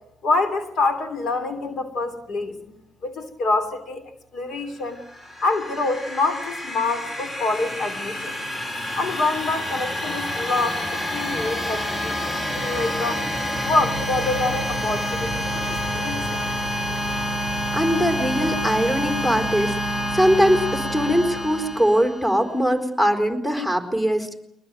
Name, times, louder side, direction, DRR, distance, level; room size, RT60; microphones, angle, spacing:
voice 1, 0.2-4.0 4.3-5.0 5.4-8.3 9.0-13.2 13.6-16.5, left 3 dB, 65° left, 10 dB, 3.2 m, -26 dB
sound 1, 4.9-22.5, equal, 35° left, 5.1 m, -28 dB
voice 2, 17.7-19.7 20.1-24.4, equal, 15° left, 8 dB, 4.4 m, -21 dB
23.0 x 20.0 x 9.2 m, 0.78 s
cardioid pair, 90°, 0 cm